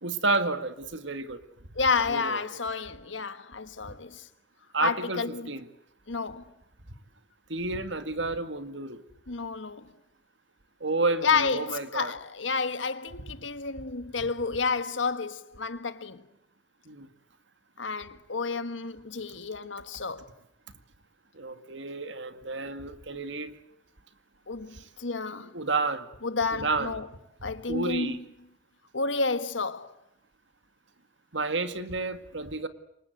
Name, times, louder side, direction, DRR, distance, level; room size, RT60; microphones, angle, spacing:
voice 1, 0.0-1.4 2.1-2.4 4.7-5.7 7.5-9.0 10.8-12.1 16.9-17.1 21.4-23.5 25.5-26.1 26.5-27.0 27.7-28.2 31.3-32.7, right 3 dB, 75° right, 1.9 m, -30 dB
voice 2, 1.7-4.3 4.8-5.5 6.1-6.5 9.3-9.9 11.2-16.2 17.8-20.3 24.5-25.6 26.2-27.1 27.4-28.2 28.9-30.0, left 4 dB, 90° left, 1.6 m, -30 dB
28.0 x 24.5 x 8.1 m
head